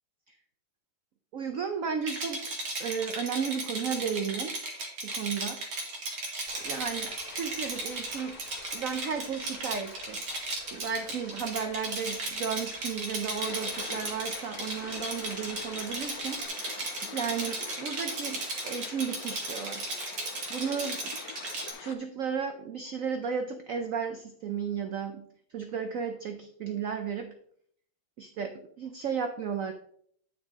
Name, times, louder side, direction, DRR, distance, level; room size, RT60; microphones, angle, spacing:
voice 1, 1.3-2.4 2.8-4.6 5.0-5.6 6.2-6.3 6.6-8.4 8.7-10.2 10.7-19.9 20.5-21.1 21.8-25.2 25.5-27.3 28.2-29.7, right 6 dB, 85° right, 7 dB, 0.7 m, -34 dB
Rattle, 2.0-21.7, right 2 dB, 55° right, 2.1 m, -36 dB
sound 1, 6.5-16.5, left 3 dB, 90° left, 2.5 m, -49 dB
sound 2, 13.4-21.9, left 7 dB, 60° left, 1.0 m, -45 dB
9.0 x 6.3 x 3.5 m, 0.63 s
omnidirectional pair, 2.2 m